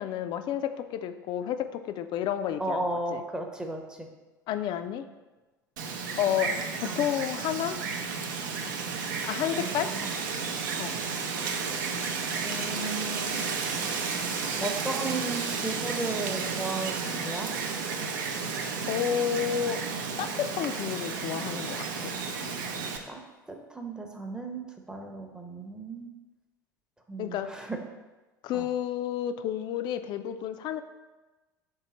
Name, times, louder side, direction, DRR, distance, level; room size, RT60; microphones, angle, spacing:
voice 1, 0.0-2.8 3.1-3.2 4.5-5.0 6.2-7.8 9.3-9.9 10.8-10.9 18.9-19.8 20.2-22.1 27.2-27.5 28.4-30.8, left 10 dB, 45° left, 9 dB, 0.4 m, -30 dB
voice 2, 2.6-4.1 6.9-7.1 9.6-10.1 12.4-13.4 14.6-17.5 23.1-23.2 23.5-26.1 27.1-27.8 28.5-28.7, right 2 dB, 5° right, 3 dB, 0.7 m, -35 dB
Wind, 5.8-23.0, right 5 dB, 65° right, 0.5 m, -32 dB
3.7 x 3.4 x 4.1 m, 1.2 s
figure-of-eight pair, 75°, 11 cm